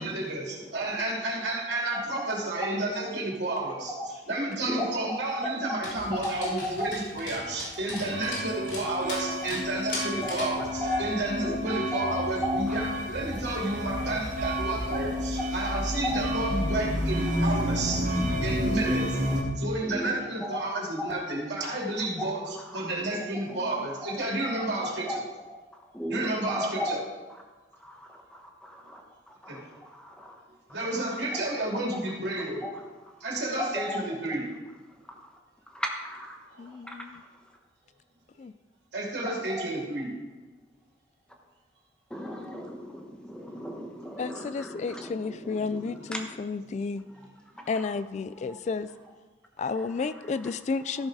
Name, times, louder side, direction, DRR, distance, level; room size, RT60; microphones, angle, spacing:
voice 1, 0.0-19.2 19.6-25.2 26.1-27.0 29.5-29.6 30.7-32.7 33.2-34.5 36.5-36.7 38.9-40.1 47.5-47.7, right 2 dB, 75° right, -2 dB, 2.9 m, -31 dB
voice 2, 1.9-2.3 3.9-4.1 4.6-5.8 6.1-6.9 10.2-11.1 11.4-12.0 12.4-12.7 14.9-15.0 15.4-15.5 16.0-16.2 18.6-18.9 19.8-20.1 20.4-20.6 21.0-21.2 22.2-22.3 22.7-22.8 24.0-24.1 24.6-24.7 24.9-25.2 25.9-27.0 27.8-28.0 28.3-29.0 29.4-29.6 29.9-30.3 31.3-31.5 32.6-32.7 33.6-34.0 35.7-36.4 36.9-37.0 39.6-39.7 42.1-46.4, equal, 5° left, 1 dB, 1.1 m, -35 dB
Dog, 5.8-10.6, left 2 dB, 80° left, 3.4 m, -39 dB
sound 1, 8.0-19.4, equal, 50° right, 1.6 m, -30 dB
voice 3, 36.6-37.2 38.4-38.5 44.2-47.0 47.7-48.9 49.6-51.1, left 4 dB, 40° left, 14 dB, 0.3 m, -32 dB
13.5 x 6.5 x 4.8 m, 1.3 s
head